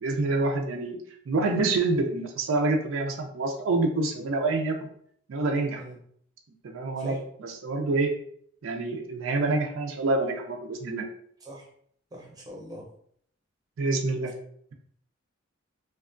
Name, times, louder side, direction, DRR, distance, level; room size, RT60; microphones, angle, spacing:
voice 1, 0.0-1.0 1.3-4.9 5.3-5.8 6.6-8.1 8.6-11.1 13.8-14.3, right 3 dB, 80° right, 3 dB, 0.4 m, -27 dB
voice 2, 12.1-12.9, equal, 20° right, -2 dB, 0.5 m, -42 dB
2.8 x 2.3 x 2.4 m, 0.65 s
head